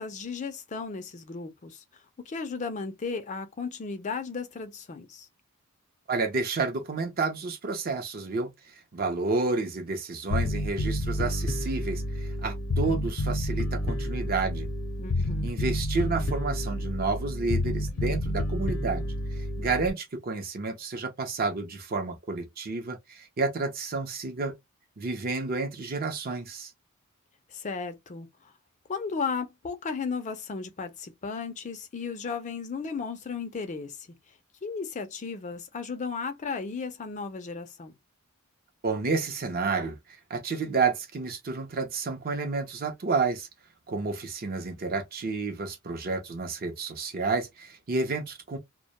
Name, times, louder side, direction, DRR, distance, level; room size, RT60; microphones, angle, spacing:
voice 1, 0.0-1.8 2.2-5.3 15.0-15.5 27.5-28.5 28.9-34.1 34.6-38.0, left 5 dB, 35° left, 0.4 m, -35 dB
voice 2, 6.1-8.5 8.9-14.7 15.4-19.1 19.6-24.5 25.0-26.7 38.8-40.0 40.3-43.5 43.9-48.6, right 4 dB, 45° right, 0.5 m, -30 dB
Bass guitar, 10.3-19.9, left 1 dB, 90° left, 0.6 m, -29 dB
2.1 x 2.1 x 2.8 m
head